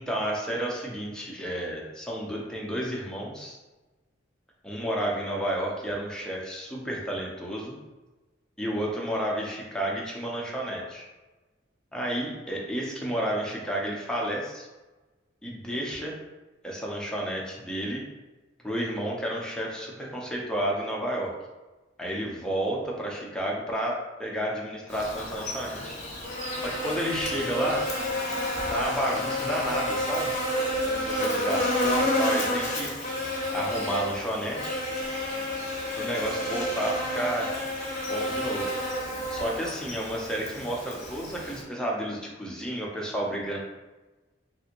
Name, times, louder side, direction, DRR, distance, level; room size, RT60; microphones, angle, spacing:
voice 1, 0.0-3.6 4.6-7.8 8.6-11.1 11.9-14.7 15.4-16.1 16.6-18.0 18.6-21.3 22.0-23.9 24.2-26.0 26.6-27.8 28.7-30.3 30.8-32.9 33.5-34.8 36.0-37.5 38.1-38.7 39.3-43.6, right 1 dB, 5° left, -3 dB, 0.5 m, -31 dB
Buzz, 24.9-41.6, left 1 dB, 40° left, 0.8 m, -30 dB
3.3 x 2.5 x 2.9 m, 1.1 s
head